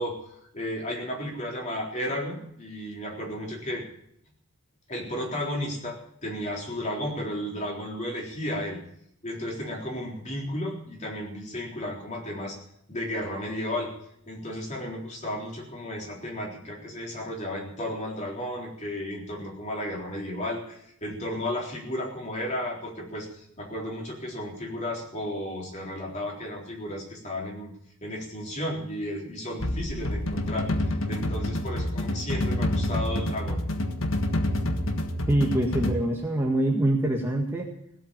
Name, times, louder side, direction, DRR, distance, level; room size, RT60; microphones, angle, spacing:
voice 1, 0.0-3.9 4.9-8.8 9.2-12.6 12.9-13.9 14.3-27.7 28.0-33.6, left 1 dB, 35° left, -1 dB, 3.9 m, -33 dB
sound 1, 29.6-35.9, left 1 dB, 65° left, 1.6 m, -28 dB
voice 2, 35.3-37.7, right 1 dB, 10° right, -1 dB, 1.7 m, -24 dB
17.5 x 8.3 x 8.7 m, 0.70 s
head